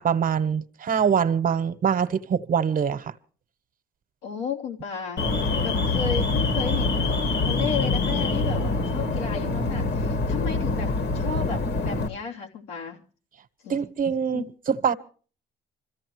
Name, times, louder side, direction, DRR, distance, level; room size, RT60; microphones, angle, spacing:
voice 1, 0.0-3.1 13.7-14.9, right 7 dB, 45° right, 1.1 m, -24 dB
voice 2, 4.2-5.2 5.6-7.1 7.4-10.9 11.1-13.0 13.6-13.8 14.3-14.5, left 6 dB, 90° left, 3.2 m, -33 dB
Alarm, 5.2-12.1, left 3 dB, 60° left, 2.0 m, -25 dB
25.5 x 14.5 x 3.1 m
supercardioid pair, 80°, 19 cm